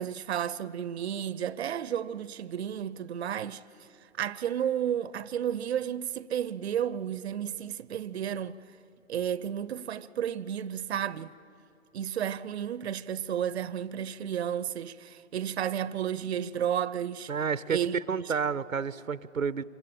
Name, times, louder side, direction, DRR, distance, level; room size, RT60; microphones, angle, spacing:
voice 1, 0.0-3.6 4.2-8.6 9.1-11.3 11.9-17.3 17.7-18.2, right 9 dB, 55° right, 0.7 m, -32 dB
voice 2, 17.3-17.8 18.1-19.6, right 6 dB, 90° right, 0.8 m, -30 dB
26.5 x 25.5 x 8.9 m
figure-of-eight pair, 135°, 39 cm